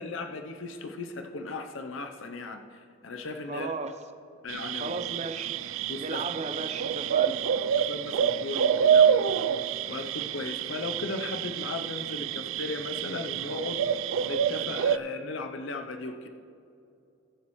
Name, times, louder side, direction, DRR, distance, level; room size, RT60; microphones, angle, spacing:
voice 1, 0.0-3.7 4.4-5.0 5.9-6.2 7.9-9.6 9.9-16.3, left 3 dB, 70° left, 5 dB, 0.6 m, -37 dB
voice 2, 3.5-3.9 4.8-5.5 6.0-7.4, right 3 dB, 30° right, 8 dB, 0.6 m, -35 dB
sound 1, 4.5-15.0, right 8 dB, 75° right, 0.3 m, -27 dB
21.0 x 7.4 x 3.1 m, 2.7 s
head